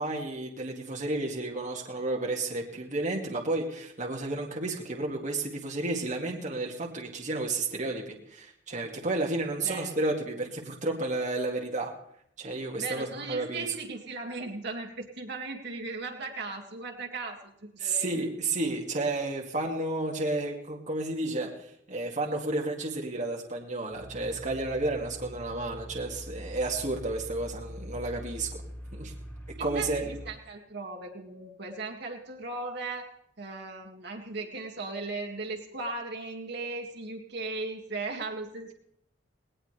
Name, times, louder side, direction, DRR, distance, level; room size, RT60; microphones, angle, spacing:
voice 1, 0.0-11.9 12.4-13.7 17.8-21.5 21.9-28.6 28.9-29.1 29.6-30.1, right 2 dB, 40° right, 0 dB, 2.1 m, -31 dB
voice 2, 12.8-18.1 29.6-33.1 33.4-38.7, right 3 dB, 60° right, 1 dB, 2.1 m, -37 dB
sound 1, 23.9-30.3, equal, 10° left, 3.0 m, -43 dB
19.0 x 18.5 x 3.3 m, 0.71 s
head